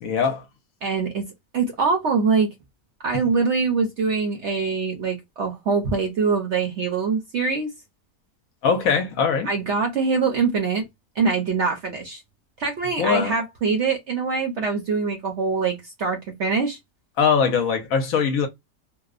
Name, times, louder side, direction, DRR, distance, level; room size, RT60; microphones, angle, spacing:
voice 1, 0.0-0.4 8.6-9.5 13.0-13.4 17.2-18.5, left 6 dB, 65° left, 1.0 m, -21 dB
voice 2, 0.8-1.3 1.5-2.5 3.0-7.7 9.5-10.9 11.2-12.2 12.6-16.8, right 5 dB, 60° right, 0.8 m, -23 dB
2.8 x 2.0 x 2.3 m
omnidirectional pair, 1.7 m